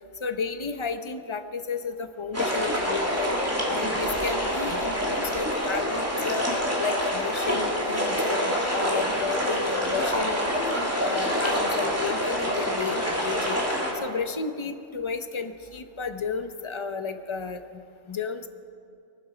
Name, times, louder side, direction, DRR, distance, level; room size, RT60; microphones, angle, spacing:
voice 1, 0.2-3.3 3.7-6.4 6.8-10.6 11.0-13.6 13.9-17.6 18.1-18.5, left 5 dB, 30° left, 9 dB, 0.6 m, -32 dB
sound 1, 2.3-13.9, equal, 10° right, 2.4 m, -26 dB
23.5 x 11.5 x 5.0 m, 2.5 s
omnidirectional pair, 1.3 m